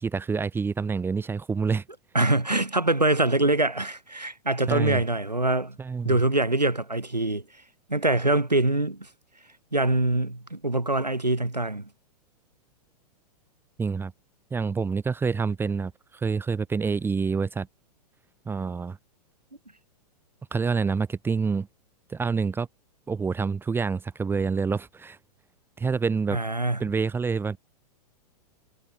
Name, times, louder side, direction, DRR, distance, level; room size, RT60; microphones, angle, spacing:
voice 1, 0.0-1.8 4.7-5.0 5.8-6.2 13.8-14.1 14.5-17.7 18.4-19.0 20.5-21.7 22.1-22.7 23.1-25.2 25.8-26.4 26.8-27.6, right 5 dB, 10° right, 1.1 m, -27 dB
voice 2, 2.1-5.8 6.0-7.4 7.9-9.1 9.7-11.9 26.3-26.8, right 2 dB, 90° right, 2.6 m, -24 dB
figure-of-eight pair, 105°, 21 cm